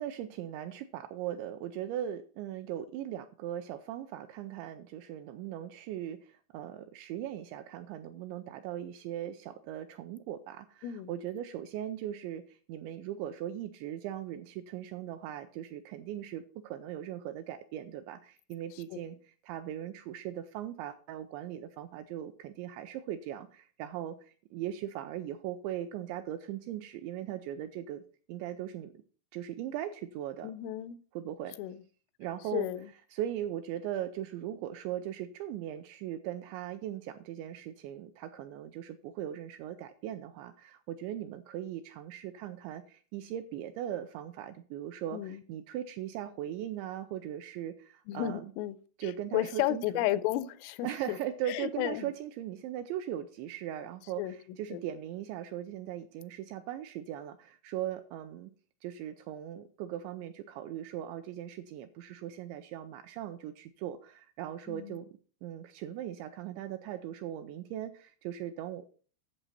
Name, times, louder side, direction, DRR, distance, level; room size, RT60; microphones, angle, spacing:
voice 1, 0.0-28.0 28.3-28.9 29.3-30.5 31.1-31.6 32.2-32.7 33.1-48.5 49.0-50.1 50.8-58.5 58.8-65.1 65.4-68.9, right 11 dB, 85° right, 9 dB, 2.6 m, -39 dB
voice 2, 30.4-31.0 31.6-31.8 32.5-32.9 45.1-45.4 48.1-48.8 49.0-51.2 51.5-52.1 54.2-54.3 54.7-54.8 64.7-65.0, left 14 dB, 90° left, 14 dB, 3.2 m, -33 dB
11.0 x 7.4 x 4.1 m, 0.41 s
omnidirectional pair, 5.7 m